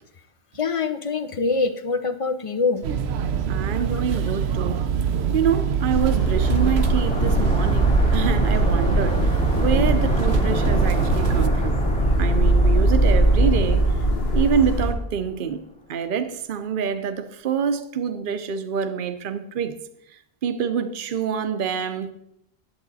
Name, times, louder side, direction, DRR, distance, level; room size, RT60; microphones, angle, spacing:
voice 1, 0.6-2.8, left 4 dB, 40° left, 0.6 m, -24 dB
sound 1, 2.8-11.5, right 7 dB, 90° right, 0.9 m, -25 dB
voice 2, 3.5-4.8 5.3-9.3 9.5-11.8 12.2-13.8 14.3-15.6 15.9-19.7 20.4-22.1, right 7 dB, 60° right, 0.9 m, -26 dB
sound 2, 5.9-14.9, right 1 dB, 75° left, 1.5 m, -21 dB
sound 3, 6.4-15.1 15.4-15.5, equal, 5° left, 0.8 m, -30 dB
11.0 x 7.8 x 4.0 m
omnidirectional pair, 1.0 m